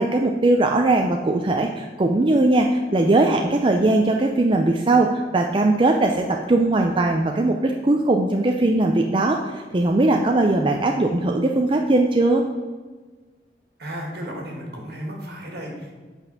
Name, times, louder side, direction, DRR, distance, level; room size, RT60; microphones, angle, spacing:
voice 1, 0.0-12.4, right 2 dB, 30° right, 2 dB, 0.5 m, -20 dB
voice 2, 13.8-16.0, equal, 60° right, -1 dB, 2.3 m, -34 dB
8.2 x 5.3 x 6.0 m, 1.4 s
head